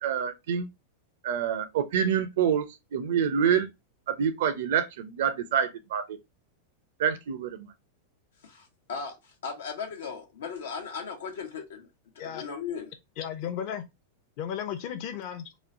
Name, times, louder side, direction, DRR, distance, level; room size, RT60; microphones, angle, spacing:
voice 1, 0.0-0.7 1.2-3.7 4.1-6.2 7.0-7.7, right 8 dB, 75° right, 0.5 m, -27 dB
voice 2, 8.4-11.9 12.2-12.9, left 6 dB, 85° left, 1.0 m, -37 dB
voice 3, 13.2-13.8 14.4-15.5, left 9 dB, 50° left, 0.6 m, -34 dB
3.1 x 2.2 x 2.5 m
hypercardioid pair, 125°, 0 cm